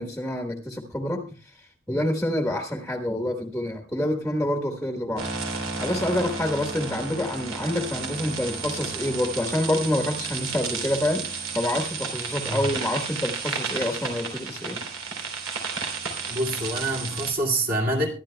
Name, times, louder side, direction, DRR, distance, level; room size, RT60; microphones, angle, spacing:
voice 1, 0.0-5.2 5.8-14.8, left 1 dB, 5° left, 1.3 m, -27 dB
sound 1, 5.2-17.3, right 5 dB, 85° right, 3.4 m, -32 dB
voice 2, 16.3-18.1, right 1 dB, 45° right, 2.3 m, -26 dB
23.5 x 11.5 x 2.2 m
head